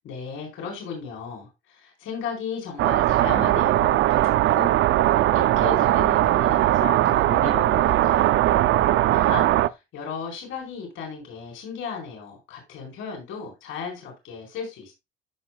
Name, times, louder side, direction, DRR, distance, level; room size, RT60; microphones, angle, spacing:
voice 1, 0.0-4.7 5.0-8.4 9.1-14.9, left 6 dB, 85° left, 4.5 m, -35 dB
sound 1, 2.8-9.7, right 14 dB, 75° right, 0.5 m, -20 dB
14.5 x 5.6 x 2.3 m
cardioid pair, 90°, 20 cm